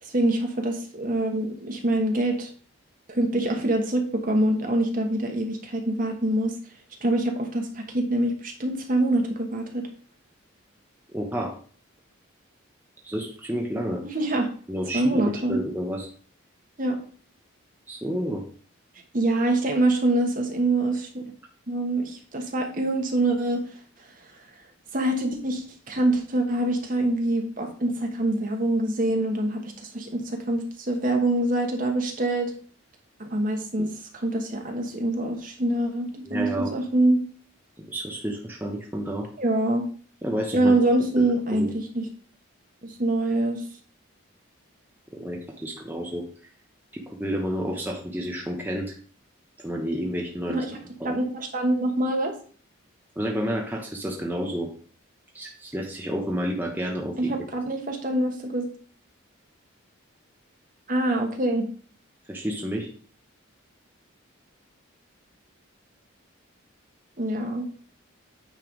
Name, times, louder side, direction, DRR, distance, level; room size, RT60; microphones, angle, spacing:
voice 1, 0.0-2.5 3.1-6.5 7.0-9.8 14.1-14.5 14.9-15.6 16.8-17.0 19.1-21.2 21.7-23.6 24.9-32.5 33.2-37.2 39.4-39.8 40.5-42.1 42.8-43.6 50.5-50.8 51.0-52.3 57.2-58.6 60.9-61.7 67.2-67.6, right 1 dB, 40° right, 3 dB, 1.2 m, -25 dB
voice 2, 11.1-11.5 13.0-14.0 14.7-16.1 17.9-18.4 36.3-36.7 37.8-39.3 40.2-40.8 41.2-41.3 41.5-41.7 45.1-46.2 46.9-48.9 49.6-50.6 51.0-51.2 53.2-54.7 55.3-57.3 62.3-62.9, equal, 10° right, -1 dB, 1.0 m, -30 dB
9.1 x 3.4 x 5.2 m, 0.44 s
head